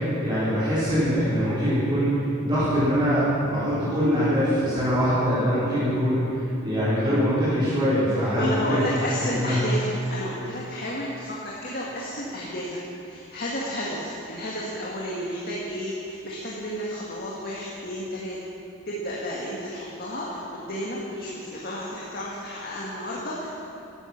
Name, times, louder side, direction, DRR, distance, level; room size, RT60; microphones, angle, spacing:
voice 1, 0.0-8.8 9.2-9.6, equal, 20° right, -13 dB, 4.3 m, -23 dB
voice 2, 8.3-18.4 18.9-23.5, equal, 45° left, -5 dB, 2.0 m, -32 dB
16.0 x 12.5 x 6.0 m, 2.8 s
head